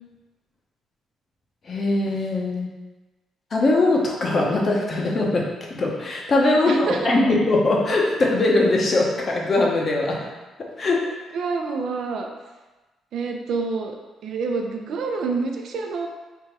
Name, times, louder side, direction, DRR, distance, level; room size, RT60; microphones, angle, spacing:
voice 1, 1.7-2.7 3.5-5.4 5.7-10.3 10.8-11.0, left 2 dB, 45° left, -1 dB, 0.9 m, -21 dB
voice 2, 6.5-7.3 11.3-12.3 13.1-14.0 14.2-16.1, right 4 dB, 70° right, 3 dB, 0.6 m, -27 dB
3.5 x 2.7 x 4.5 m, 1.2 s
cardioid pair, 90°, 0 cm